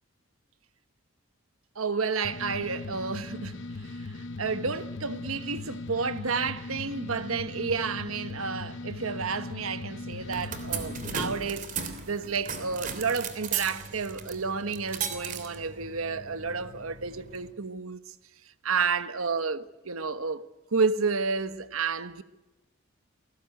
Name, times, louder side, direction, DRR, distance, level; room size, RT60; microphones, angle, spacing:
voice 1, 1.7-4.1 4.4-18.1 18.6-22.2, right 4 dB, 90° right, 1.3 m, -31 dB
sound 1, 2.2-11.3, left 2 dB, 60° left, 0.9 m, -39 dB
sound 2, 10.1-17.5, right 6 dB, 40° right, 3.2 m, -37 dB
29.5 x 20.0 x 9.2 m
head